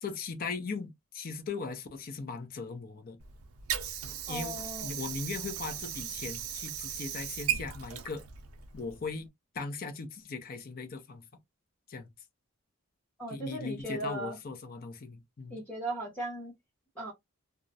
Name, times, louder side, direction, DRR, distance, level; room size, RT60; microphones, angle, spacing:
voice 1, 0.0-3.2 4.3-4.6 4.8-8.2 8.7-9.3 9.5-11.2 11.9-12.1 13.3-15.6, left 4 dB, 40° left, 0.5 m, -38 dB
Water / Sink (filling or washing), 3.2-9.2, right 9 dB, 70° right, 0.5 m, -37 dB
voice 2, 4.3-5.0 13.2-14.4 15.5-16.5 16.9-17.1, right 1 dB, 10° left, 0.9 m, -37 dB
2.4 x 2.0 x 2.5 m
head